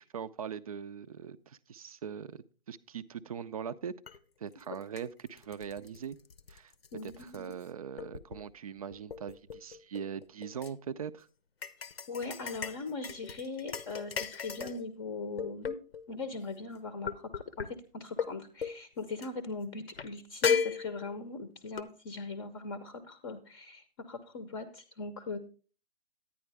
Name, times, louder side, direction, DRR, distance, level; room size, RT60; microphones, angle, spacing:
voice 1, 0.0-3.9 4.4-6.2 6.5-6.7 7.0-11.3, right 7 dB, 40° right, 15 dB, 0.4 m, -41 dB
sound 1, 4.1-4.2 4.6-7.6 8.0-8.5 8.9-10.7 11.6-14.8 15.4-16.0 17.0-17.7 18.2-18.3 18.6-18.8 19.2-19.3 20.0-20.1 20.4-21.2 21.8-21.9, left 6 dB, 85° left, 0.8 m, -35 dB
voice 2, 6.9-7.5 12.1-15.8 16.1-25.4, left 3 dB, 25° left, 10 dB, 0.7 m, -40 dB
10.0 x 9.7 x 3.3 m, 0.36 s
hypercardioid pair, 150°, 29 cm